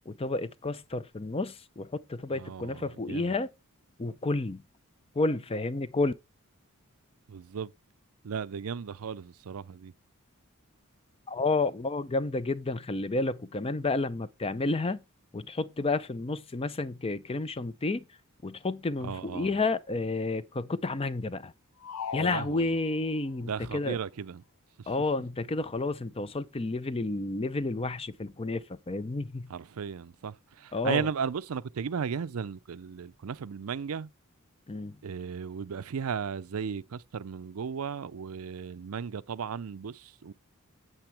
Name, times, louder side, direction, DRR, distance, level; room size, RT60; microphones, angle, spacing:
voice 1, 0.1-3.5 4.0-4.6 5.1-6.1 11.3-15.0 15.3-18.0 18.4-21.5 22.1-24.0 24.9-29.5 30.7-31.1 34.7-35.0, left 3 dB, 25° left, 0.6 m, -31 dB
voice 2, 2.3-3.4 7.3-7.7 8.2-9.9 19.0-19.5 22.2-22.7 23.4-24.4 29.5-34.1 35.0-40.3, right 6 dB, 70° right, 0.5 m, -35 dB
sound 1, 21.8-23.3, left 7 dB, 75° left, 0.4 m, -39 dB
8.9 x 7.8 x 3.4 m
head